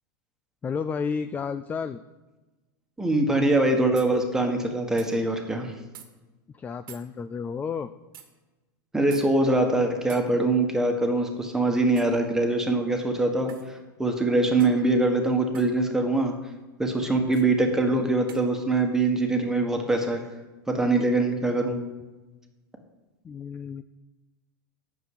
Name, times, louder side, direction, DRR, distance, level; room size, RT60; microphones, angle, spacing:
voice 1, 0.6-2.0 6.5-7.9 23.2-23.8, left 6 dB, 15° left, 12 dB, 0.3 m, -31 dB
voice 2, 3.0-5.7 8.9-16.3 16.8-20.2 20.7-21.8, right 2 dB, 5° right, 3 dB, 1.5 m, -23 dB
sound 1, 4.0-4.1 5.0-5.1 5.9-6.1 6.9-7.1 8.1-8.3 9.1-9.3 10.1-10.3 12.0-12.2 13.5-13.7 14.6-14.8 15.5-15.7 17.3-17.5 18.3-18.5, right 9 dB, 80° right, 1.6 m, -46 dB
9.3 x 7.0 x 8.0 m, 1.1 s
supercardioid pair, 135°, 12 cm